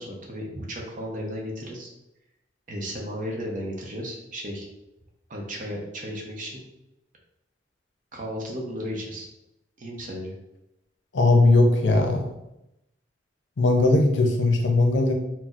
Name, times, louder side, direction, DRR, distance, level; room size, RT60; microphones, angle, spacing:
voice 1, 0.0-1.9 2.7-4.7 5.3-6.6 8.1-9.3 9.8-10.3, equal, 45° right, 0 dB, 0.6 m, -34 dB
voice 2, 11.1-12.3 13.6-15.1, left 2 dB, 75° left, 3 dB, 0.5 m, -19 dB
4.1 x 2.0 x 2.4 m, 0.89 s
head